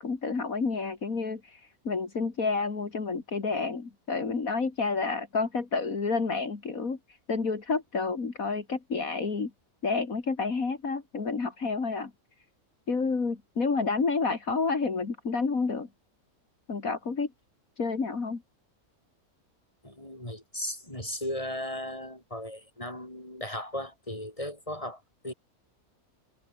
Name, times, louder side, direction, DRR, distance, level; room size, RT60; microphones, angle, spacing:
voice 1, 0.0-1.6 1.8-7.0 7.3-9.5 9.8-12.1 12.9-15.9 16.7-17.3 17.8-18.4, left 4 dB, 70° left, 3.0 m, -29 dB
voice 2, 19.8-25.3, left 1 dB, 20° left, 7.9 m, -36 dB
omnidirectional pair, 1.5 m